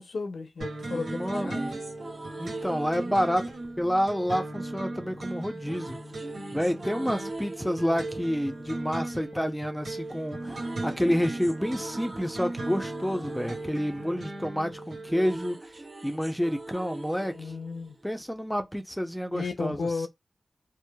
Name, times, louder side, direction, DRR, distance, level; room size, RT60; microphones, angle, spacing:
voice 1, 0.0-1.6 17.3-18.0 19.3-20.1, left 4 dB, 80° left, 0.6 m, -34 dB
sound 1, 0.6-4.7 5.6-9.8 10.1-18.6, right 2 dB, 50° right, 0.6 m, -42 dB
sound 2, 0.6-15.4, right 2 dB, 85° right, 1.1 m, -38 dB
voice 2, 1.0-1.7 2.4-3.5 3.8-6.0 6.5-15.7 16.0-17.5 18.0-19.8, equal, ahead, 0.5 m, -29 dB
2.8 x 2.1 x 2.2 m
cardioid pair, 45°, 0 cm